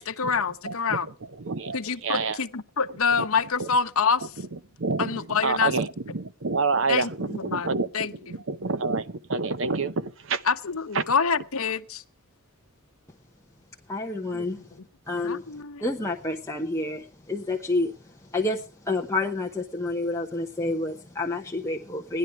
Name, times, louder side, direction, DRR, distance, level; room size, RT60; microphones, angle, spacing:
voice 1, 0.0-1.1 1.7-4.3 5.0-5.7 6.9-7.7 7.9-8.1 10.5-12.0 14.3-14.7 15.2-15.8, left 5 dB, 75° left, 0.9 m, -26 dB
voice 2, 0.6-2.4 3.2-3.3 3.6-3.7 4.4-10.4 10.9-11.0, right 4 dB, 60° right, 0.8 m, -28 dB
voice 3, 13.9-14.6 15.1-15.4 15.8-17.9 18.3-22.2, left 2 dB, 15° left, 0.8 m, -29 dB
17.0 x 11.0 x 4.6 m
head